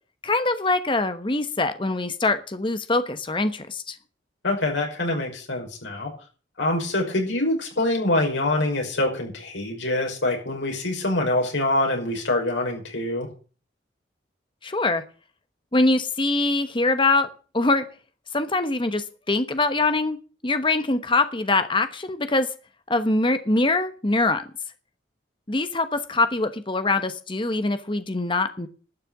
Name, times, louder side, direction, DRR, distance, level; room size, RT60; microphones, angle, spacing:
voice 1, 0.2-4.0 14.6-15.0 15.7-17.3 17.5-17.8 18.3-20.2 20.4-22.5 22.9-24.4 25.5-28.7, left 2 dB, 25° left, 10 dB, 1.1 m, -23 dB
voice 2, 4.4-6.1 6.6-13.3, left 2 dB, 85° left, 1 dB, 5.5 m, -25 dB
12.0 x 6.6 x 9.2 m, 0.37 s
head